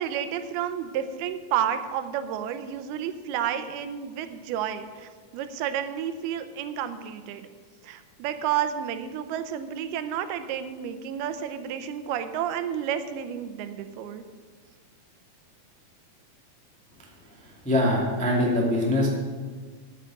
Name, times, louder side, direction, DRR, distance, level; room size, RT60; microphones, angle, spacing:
voice 1, 0.0-7.5 7.8-14.2, right 9 dB, 85° right, 10 dB, 2.7 m, -31 dB
voice 2, 17.3-19.1, left 1 dB, 5° left, -3 dB, 1.1 m, -24 dB
9.9 x 8.9 x 7.6 m, 1.5 s
omnidirectional pair, 4.4 m